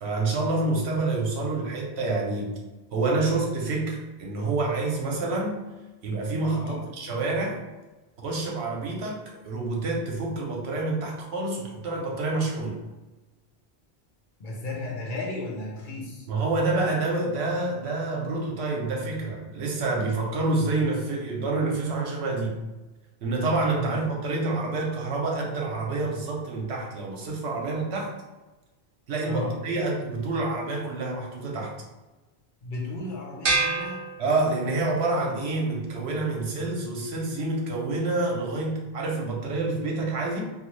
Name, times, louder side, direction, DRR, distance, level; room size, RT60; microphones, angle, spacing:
voice 1, 0.0-2.5 2.9-5.6 6.0-7.6 8.2-12.8 16.3-22.6 23.2-28.1 29.1-31.8 34.2-40.4, right 3 dB, 85° right, -1 dB, 1.0 m, -27 dB
voice 2, 6.5-6.9 14.4-16.3 23.7-24.1 29.2-29.6 32.6-34.1, left 2 dB, 55° left, -2 dB, 0.8 m, -34 dB
sound 1, 33.4-34.9, right 3 dB, 60° right, 0.8 m, -28 dB
3.1 x 2.3 x 3.1 m, 1.1 s
omnidirectional pair, 1.1 m